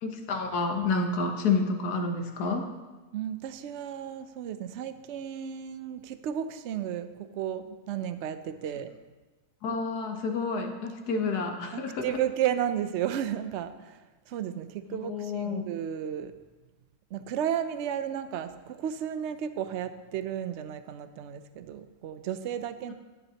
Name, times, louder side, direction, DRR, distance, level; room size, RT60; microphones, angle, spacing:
voice 1, 0.0-2.7 9.6-12.2 14.9-15.6 22.9-23.0, left 4 dB, 90° left, 5 dB, 1.5 m, -29 dB
voice 2, 3.1-8.9 11.7-14.0 14.3-16.3 17.1-22.9, right 9 dB, 65° right, 11 dB, 0.7 m, -33 dB
13.5 x 9.8 x 2.9 m, 1.2 s
omnidirectional pair, 1.6 m